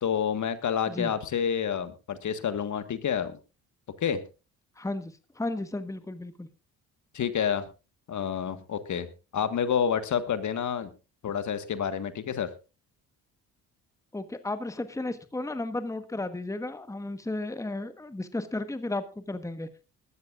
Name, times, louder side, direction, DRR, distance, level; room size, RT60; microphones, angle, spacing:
voice 1, 0.0-3.3 4.0-4.2 7.1-7.6 8.1-10.9 11.2-12.5, left 8 dB, 55° left, 11 dB, 1.6 m, -29 dB
voice 2, 4.8-6.5 14.1-19.7, left 2 dB, 10° left, 10 dB, 1.3 m, -34 dB
19.5 x 13.0 x 2.5 m, 0.31 s
supercardioid pair, 75°, 36 cm